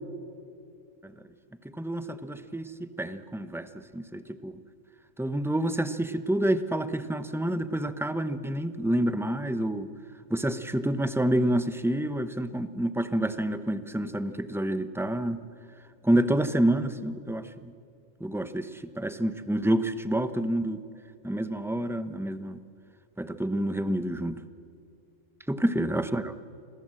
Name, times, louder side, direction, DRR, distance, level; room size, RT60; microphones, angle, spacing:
voice 1, 1.8-3.7 3.9-4.5 5.2-9.9 10.3-15.4 16.0-17.4 18.2-18.7 19.0-20.8 21.2-22.6 23.2-24.3 25.5-26.3, right 1 dB, 5° right, 10 dB, 0.6 m, -28 dB
29.0 x 21.5 x 7.7 m, 2.4 s
omnidirectional pair, 1.4 m